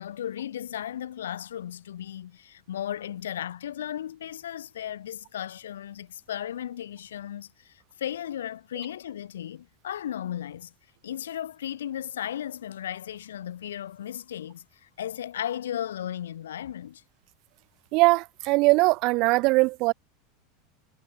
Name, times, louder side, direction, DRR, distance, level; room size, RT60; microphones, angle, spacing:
voice 1, 0.0-10.7 11.0-17.0, left 10 dB, 75° left, 7.1 m, -35 dB
voice 2, 17.9-19.9, right 25 dB, 55° right, 2.1 m, -21 dB
hypercardioid pair, 85°, 0 cm